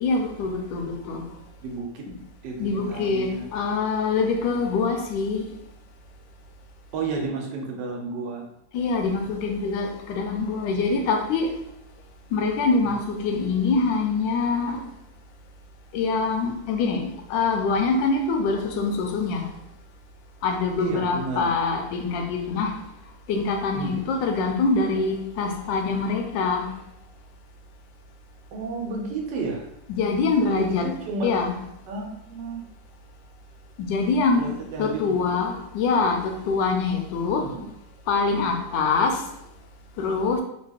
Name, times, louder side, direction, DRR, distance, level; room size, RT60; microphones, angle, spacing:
voice 1, 0.0-1.2 2.1-2.2 2.6-5.5 8.7-11.5 12.3-14.8 15.9-19.5 20.4-22.7 23.3-26.7 29.9-30.8 31.2-31.5 33.8-37.4 38.1-39.2 40.0-40.4, left 4 dB, 85° left, 3 dB, 1.3 m, -24 dB
voice 2, 1.6-2.0 2.4-3.5 4.5-4.9 6.9-8.4 12.8-13.0 20.8-21.5 23.7-24.0 28.5-29.7 30.4-31.4 31.9-32.6 34.3-35.4 37.4-37.7, right 3 dB, 80° right, 1 dB, 1.3 m, -32 dB
3.1 x 2.3 x 3.3 m, 0.78 s
omnidirectional pair, 1.9 m